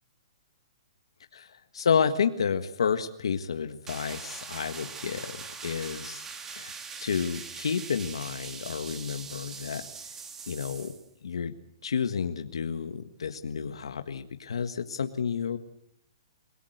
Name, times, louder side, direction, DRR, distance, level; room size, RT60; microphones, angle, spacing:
voice 1, 1.3-6.7 7.0-9.9 10.5-11.0 11.2-11.5 11.8-15.6, left 6 dB, 90° left, 8 dB, 1.6 m, -30 dB
sound 1, 3.9-11.1, right 5 dB, 15° right, 2.3 m, -42 dB
29.0 x 18.5 x 8.1 m, 0.70 s
hypercardioid pair, 160°, 3 cm